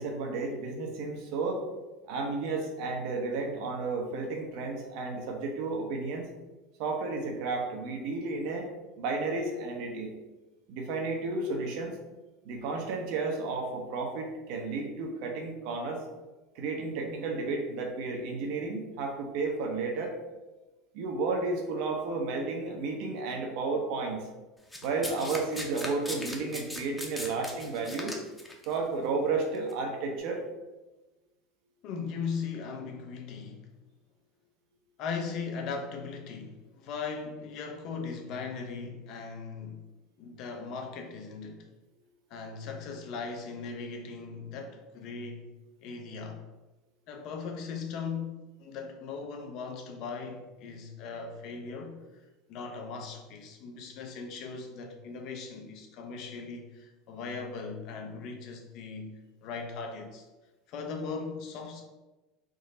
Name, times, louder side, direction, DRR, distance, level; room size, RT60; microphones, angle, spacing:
voice 1, 0.0-1.6 2.1-6.3 6.8-8.7 9.0-10.1 10.7-11.9 12.4-16.1 16.6-20.1 20.9-24.3 24.8-28.2 28.7-30.4, right 3 dB, 65° right, 2 dB, 0.7 m, -32 dB
Domestic sounds home sounds, 24.7-28.7 29.5-29.7, left 1 dB, 10° left, 0.7 m, -38 dB
voice 2, 31.8-33.7 35.0-39.8 40.2-41.7 42.3-45.5 45.8-46.4 47.1-52.0 52.5-60.2 60.7-61.9, left 5 dB, 60° left, 4 dB, 0.6 m, -38 dB
3.7 x 2.1 x 3.8 m, 1.1 s
supercardioid pair, 95°, 0 cm